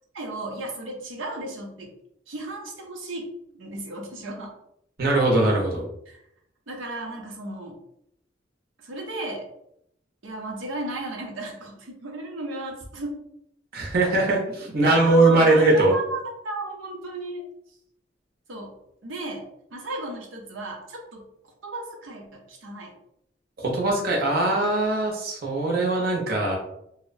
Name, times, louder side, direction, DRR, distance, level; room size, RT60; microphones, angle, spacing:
voice 1, 0.1-1.9 2.3-3.3 3.6-4.5 6.1-6.2 6.7-7.8 8.8-9.5 10.2-13.2 14.8-17.4 18.5-21.3 21.6-23.0, right 2 dB, 90° right, 1 dB, 0.6 m, -34 dB
voice 2, 5.0-5.8 13.7-15.9 23.6-26.6, right 2 dB, 55° right, -1 dB, 0.7 m, -21 dB
2.7 x 2.0 x 2.5 m, 0.76 s
head